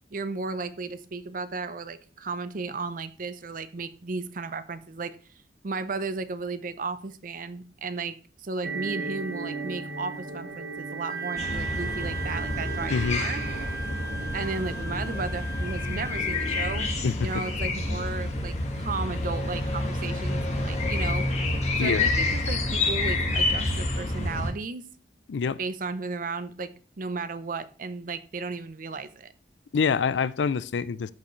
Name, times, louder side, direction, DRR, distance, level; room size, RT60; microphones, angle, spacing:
voice 1, 0.1-5.2 5.6-13.4 14.3-16.9 17.2-21.3 21.8-24.8 25.6-29.3, right 4 dB, 50° right, 0.6 m, -34 dB
sound 1, 8.6-14.3, right 4 dB, 75° right, 1.1 m, -36 dB
Wind instrument woodwind instrument, 11.1-16.9, right 3 dB, 25° left, 1.3 m, -38 dB
sound 2, 11.4-24.5, left 2 dB, 40° left, 1.6 m, -28 dB
voice 2, 12.9-13.2 17.0-17.3 21.8-22.1 25.3-25.6 29.7-31.1, left 5 dB, 85° left, 0.4 m, -26 dB
14.0 x 4.8 x 3.2 m
head